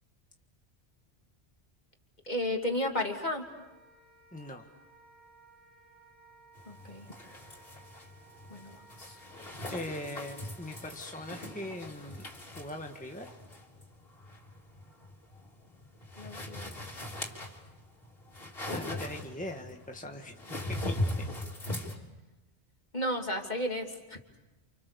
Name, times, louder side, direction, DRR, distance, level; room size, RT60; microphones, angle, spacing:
voice 1, 2.2-3.4 6.7-7.1 8.5-9.2 16.2-16.7 22.9-24.4, left 1 dB, 40° left, 2 dB, 3.1 m, -33 dB
Wind instrument woodwind instrument, 3.4-11.8, right 3 dB, 65° right, 6.4 m, -59 dB
voice 2, 4.3-4.7 9.7-12.3 12.6-13.4 18.7-20.4 20.7-21.0, left 1 dB, 5° left, 3 dB, 1.7 m, -41 dB
sound 1, 6.5-21.9, left 1 dB, 60° left, 4.1 m, -40 dB
30.0 x 29.0 x 6.9 m, 1.1 s
omnidirectional pair, 1.1 m